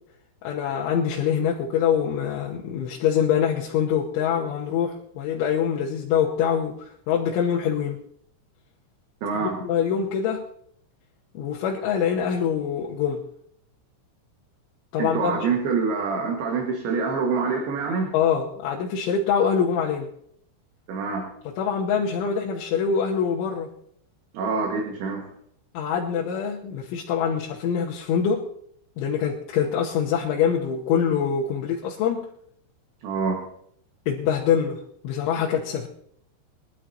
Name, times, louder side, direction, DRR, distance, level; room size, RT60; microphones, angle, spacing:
voice 1, 0.4-8.0 9.4-10.5 11.3-13.2 14.9-15.4 18.1-20.1 21.4-23.7 25.7-28.5 29.0-32.3 34.1-35.9, left 7 dB, 80° left, -2 dB, 3.4 m, -24 dB
voice 2, 9.2-9.6 15.0-18.1 20.9-21.2 24.3-25.2 33.0-33.4, right 4 dB, 60° right, 0 dB, 3.4 m, -26 dB
22.5 x 12.5 x 2.9 m, 0.68 s
omnidirectional pair, 5.6 m